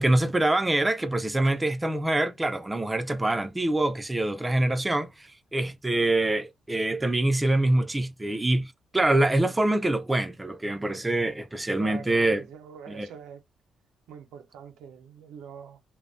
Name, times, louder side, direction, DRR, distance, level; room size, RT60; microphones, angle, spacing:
voice 1, 0.0-5.1 5.5-12.4 12.9-13.1, right 1 dB, 15° right, 0.4 m, -25 dB
voice 2, 11.8-13.4 14.1-15.8, right 7 dB, 90° right, 0.5 m, -44 dB
2.6 x 2.1 x 2.5 m
cardioid pair, 90°, 0 cm